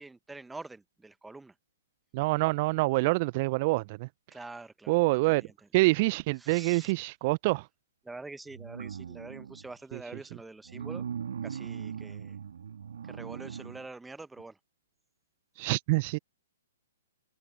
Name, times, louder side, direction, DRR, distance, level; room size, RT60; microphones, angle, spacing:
voice 1, 0.0-1.5 4.3-4.9 5.3-5.5 6.4-6.9 8.0-11.0 11.4-12.4 13.0-14.6, right 3 dB, 5° right, 1.1 m, -45 dB
voice 2, 2.1-4.1 4.9-5.5 5.7-7.6 9.9-10.0 15.6-16.2, right 24 dB, 40° right, 0.8 m, -26 dB
sound 1, 8.5-9.7 10.7-13.8 14.4-14.5, right 8 dB, 65° right, 2.2 m, -39 dB
figure-of-eight pair, 120°, 0 cm